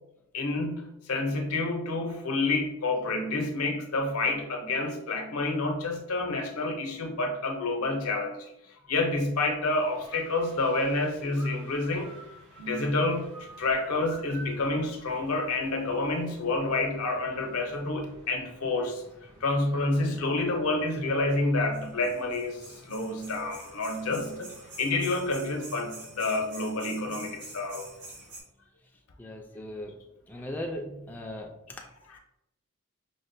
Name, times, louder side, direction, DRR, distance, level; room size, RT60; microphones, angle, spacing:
voice 1, 0.3-8.5 8.9-12.2 12.6-13.3 13.6-19.0 19.4-27.9 31.8-32.2, left 2 dB, 80° left, 3 dB, 0.6 m, -29 dB
sound 1, 9.8-28.4, right 1 dB, 80° right, 1.0 m, -49 dB
voice 2, 29.2-29.9 30.3-31.5, left 1 dB, 10° left, 0 dB, 0.3 m, -37 dB
5.3 x 2.1 x 2.5 m, 0.83 s
head